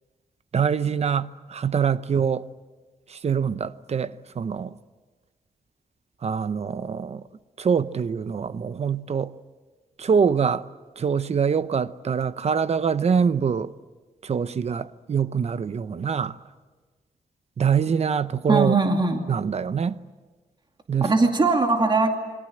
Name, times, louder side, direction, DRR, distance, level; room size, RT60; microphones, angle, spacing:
voice 1, 0.5-2.4 3.1-4.7 6.2-7.2 7.6-9.3 10.0-10.7 11.0-13.7 14.2-16.4 17.6-18.8 19.3-20.0 20.9-21.1, right 6 dB, 50° right, 0.8 m, -24 dB
voice 2, 18.5-19.2 21.0-22.1, right 3 dB, 35° right, 2.5 m, -20 dB
28.0 x 24.0 x 7.9 m
wide cardioid pair, 120°, 14 cm